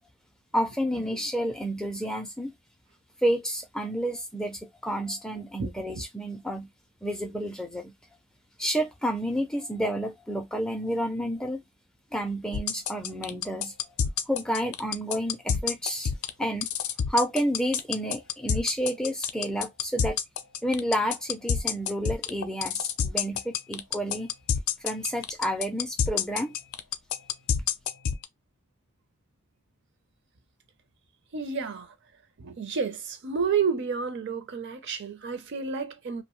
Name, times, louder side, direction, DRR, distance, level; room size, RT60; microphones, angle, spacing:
voice 1, 0.5-2.5 3.2-6.7 7.0-7.9 8.6-11.6 12.1-13.7 14.3-16.1 16.4-16.7 17.1-20.2 20.6-24.3 24.8-26.5, equal, 5° left, 0.3 m, -30 dB
sound 1, 12.5-28.2, left 8 dB, 70° left, 0.4 m, -27 dB
voice 2, 31.3-31.9 32.4-36.2, right 5 dB, 55° right, 0.5 m, -30 dB
2.6 x 2.1 x 3.0 m
head